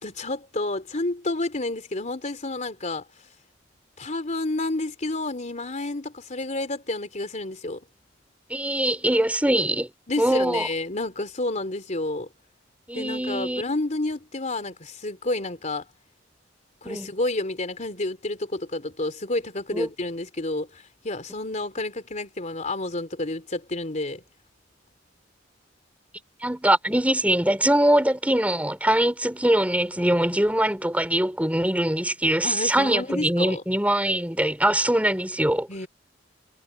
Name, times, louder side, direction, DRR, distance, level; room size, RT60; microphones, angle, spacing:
voice 1, 0.0-3.0 4.0-7.8 10.1-12.3 12.9-15.8 16.8-24.2 32.4-33.6 35.7-35.9, left 2 dB, 40° left, 3.3 m, -30 dB
voice 2, 8.5-9.9 10.2-10.7 12.9-13.6 16.8-17.1 19.7-19.9 26.4-35.7, right 1 dB, 10° right, 4.1 m, -22 dB
head